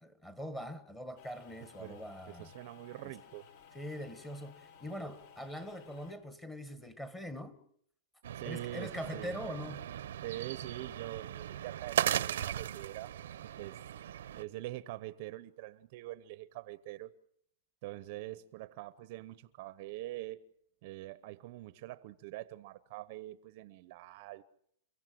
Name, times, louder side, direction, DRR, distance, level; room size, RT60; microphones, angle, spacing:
voice 1, 0.0-2.5 3.0-3.2 3.7-7.6 8.4-9.9, equal, 5° left, 1.5 m, -43 dB
sound 1, 1.2-6.1, left 7 dB, 50° left, 4.4 m, -57 dB
voice 2, 2.3-3.5 8.3-9.3 10.2-13.1 13.4-13.8 14.3-17.1 17.8-20.4 20.8-24.4, right 16 dB, 45° right, 0.8 m, -44 dB
sound 2, 8.2-14.4, right 11 dB, 70° right, 0.8 m, -37 dB
30.0 x 16.5 x 7.7 m
supercardioid pair, 160°, 0 cm